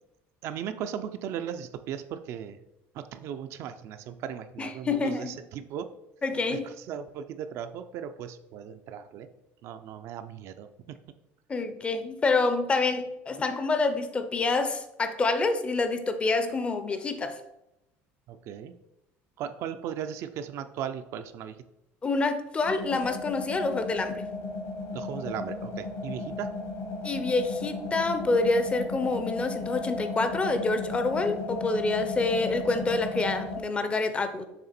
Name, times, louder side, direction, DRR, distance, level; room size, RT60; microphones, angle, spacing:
voice 1, 0.4-2.6 2.9-5.9 6.5-9.3 9.6-11.1 18.3-18.8 19.4-21.6 24.9-26.6, right 9 dB, 60° right, 9 dB, 0.4 m, -37 dB
voice 2, 4.6-5.4 6.2-6.7 11.5-17.4 22.0-24.3 27.0-34.5, left 3 dB, 20° left, 9 dB, 0.5 m, -27 dB
sound 1, 22.6-33.6, left 3 dB, 60° left, 1.3 m, -35 dB
6.7 x 3.3 x 4.3 m, 0.88 s
cardioid pair, 130°, 6 cm